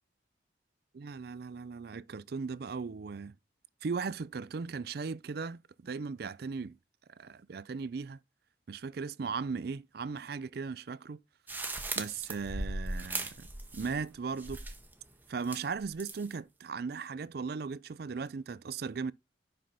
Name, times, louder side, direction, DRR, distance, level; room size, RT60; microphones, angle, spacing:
voice 1, 1.0-3.4 3.8-6.8 7.2-8.2 8.7-11.2 12.0-13.5 13.7-14.6 15.3-19.1, right 5 dB, 55° right, 0.4 m, -37 dB
sound 1, 11.5-14.1 14.4-14.9 15.4-16.3, right 2 dB, 10° right, 0.8 m, -38 dB
5.6 x 5.4 x 5.1 m
head